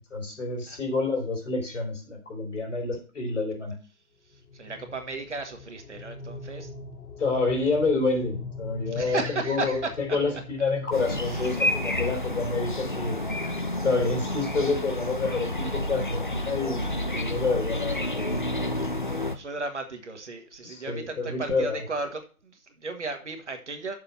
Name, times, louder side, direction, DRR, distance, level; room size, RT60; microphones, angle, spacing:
voice 1, 0.1-3.7 7.2-9.2 9.5-9.8 10.1-13.2 13.8-18.4 20.6-21.8, left 3 dB, 55° left, 1 dB, 4.1 m, -28 dB
sound 1, 4.3-19.2, left 3 dB, 80° left, 1.5 m, -43 dB
voice 2, 4.3-6.7 8.9-10.2 11.2-11.7 19.1-24.0, right 3 dB, 50° right, 5 dB, 1.7 m, -35 dB
sound 2, 10.9-19.4, left 1 dB, 35° left, 0.6 m, -30 dB
6.9 x 5.1 x 7.1 m, 0.36 s
figure-of-eight pair, 170°, 44 cm